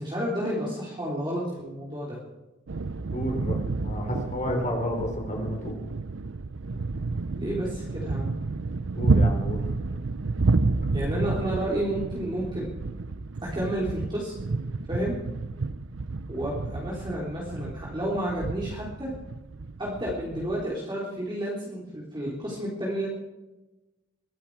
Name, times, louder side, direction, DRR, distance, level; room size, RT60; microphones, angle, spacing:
voice 1, 0.0-2.2 7.3-8.3 10.9-12.7 13.4-14.3 14.9-15.2 16.3-19.1 19.8-23.1, right 1 dB, 25° right, -5 dB, 3.6 m, -31 dB
sound 1, 2.7-20.6, right 3 dB, 90° right, 0.7 m, -30 dB
voice 2, 3.1-5.7 9.0-9.6, left 1 dB, 40° left, 2 dB, 4.2 m, -31 dB
22.0 x 12.0 x 4.8 m, 1.0 s
head